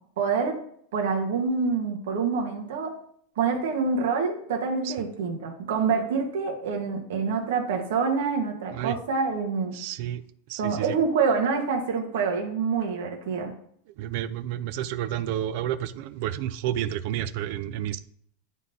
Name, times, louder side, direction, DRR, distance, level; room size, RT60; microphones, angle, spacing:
voice 1, 0.2-0.6 0.9-2.9 3.4-9.7 10.6-13.5, right 5 dB, 85° right, 1.2 m, -26 dB
voice 2, 9.7-10.2 10.5-11.0 14.0-18.0, right 11 dB, 55° right, 0.3 m, -30 dB
11.0 x 3.7 x 2.7 m
supercardioid pair, 160°, 0 cm